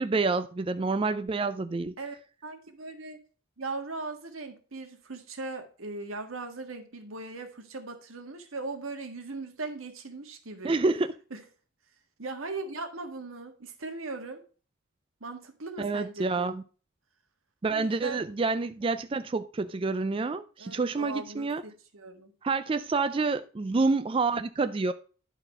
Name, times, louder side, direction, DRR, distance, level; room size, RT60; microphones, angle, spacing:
voice 1, 0.0-1.9 10.6-11.1 15.8-16.6 17.6-21.6 22.4-24.9, right 3 dB, 25° right, 0.4 m, -28 dB
voice 2, 2.4-3.2 3.6-10.8 11.3-11.4 12.2-14.4 15.2-16.5 17.7-18.2 20.6-22.3, right 3 dB, 90° right, 1.6 m, -39 dB
11.5 x 4.1 x 5.4 m
head